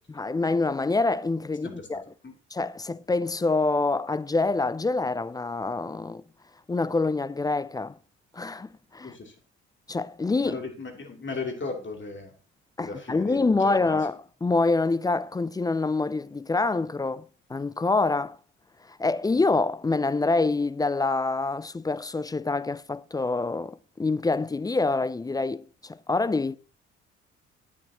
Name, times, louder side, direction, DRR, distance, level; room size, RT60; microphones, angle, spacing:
voice 1, 0.1-2.0 2.5-6.2 6.7-8.0 8.3-9.1 9.9-10.6 12.8-18.4 18.9-26.6, left 3 dB, 10° left, 0.3 m, -26 dB
voice 2, 9.0-9.3 10.4-12.3 12.8-13.9, left 3 dB, 35° left, 2.9 m, -36 dB
11.0 x 8.4 x 2.9 m
hypercardioid pair, 45°, 34 cm